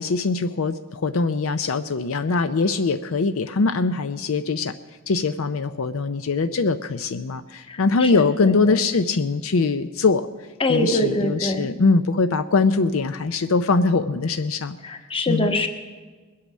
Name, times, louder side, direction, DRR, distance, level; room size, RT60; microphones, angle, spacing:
voice 1, 0.0-4.7 5.1-10.3 10.7-14.8 15.3-15.5, left 4 dB, 65° left, 10 dB, 0.5 m, -22 dB
voice 2, 7.7-8.8 10.6-11.7 14.8-15.7, left 1 dB, 25° left, 6 dB, 1.2 m, -24 dB
21.0 x 8.6 x 6.2 m, 1.4 s
head